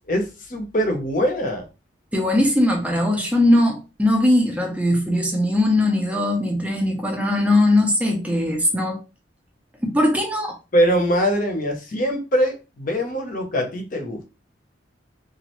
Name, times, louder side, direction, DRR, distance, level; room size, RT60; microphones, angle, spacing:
voice 1, 0.1-1.7 10.7-14.3, equal, 45° left, 0.7 m, -22 dB
voice 2, 2.1-9.0 9.8-10.5, left 1 dB, 5° right, 0.5 m, -20 dB
3.0 x 2.4 x 3.0 m
head